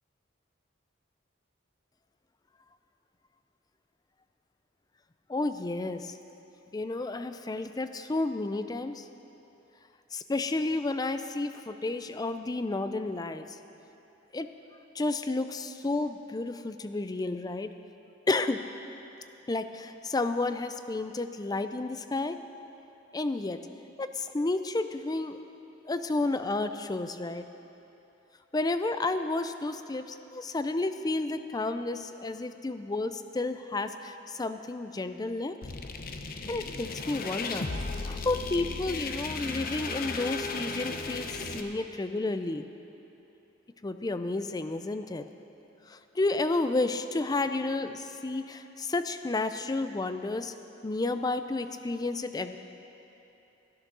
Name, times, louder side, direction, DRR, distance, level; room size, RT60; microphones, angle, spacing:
voice 1, 5.3-6.1 6.7-9.0 10.1-13.5 14.3-14.5 15.0-17.7 18.3-18.6 19.5-22.4 23.1-23.6 24.0-25.4 25.9-27.5 28.5-35.6 36.5-37.7 38.1-42.7 43.8-45.2 45.9-50.5 50.8-52.6, left 2 dB, 20° left, 9 dB, 0.4 m, -31 dB
sound 1, 35.6-41.6, left 3 dB, 50° left, 0.7 m, -35 dB
12.5 x 11.0 x 6.2 m, 2.9 s
head